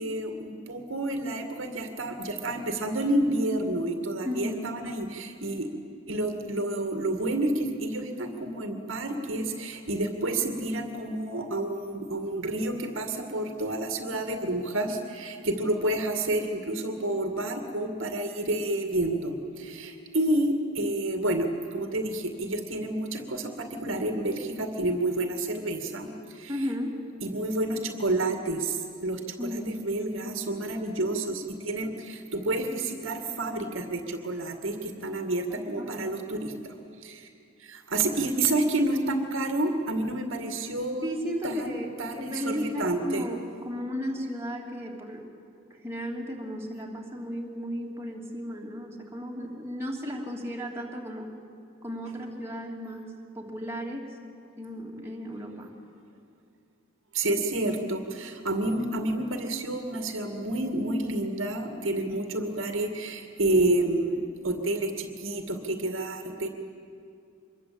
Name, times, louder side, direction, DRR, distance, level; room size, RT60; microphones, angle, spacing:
voice 1, 0.0-5.7 6.1-26.6 27.2-37.3 37.6-41.1 41.4-43.2 57.1-66.5, right 2 dB, 65° right, 5 dB, 2.3 m, -29 dB
voice 2, 4.2-4.6 26.5-27.0 29.4-29.8 30.2-30.4 35.5-36.1 41.0-45.3 45.7-51.3 51.8-54.2 54.6-55.7, equal, 10° right, -2 dB, 3.1 m, -35 dB
26.0 x 22.0 x 8.7 m, 2.5 s
head